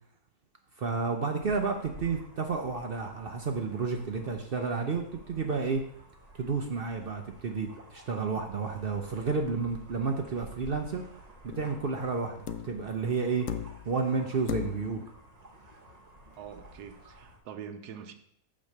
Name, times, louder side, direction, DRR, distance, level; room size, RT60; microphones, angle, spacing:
voice 1, 0.8-5.8 6.4-11.0 11.6-13.5 13.9-15.1, right 4 dB, 55° right, 4 dB, 0.6 m, -31 dB
sound 1, 1.4-17.4, right 2 dB, 30° right, 0.9 m, -52 dB
sound 2, 11.5-11.8 12.5-12.9 13.5-14.0 14.5-15.0 16.4-16.5, left 10 dB, 70° left, 0.8 m, -36 dB
voice 2, 16.4-18.1, right 8 dB, 80° right, 7 dB, 1.3 m, -44 dB
8.5 x 3.1 x 6.4 m, 0.70 s
omnidirectional pair, 1.7 m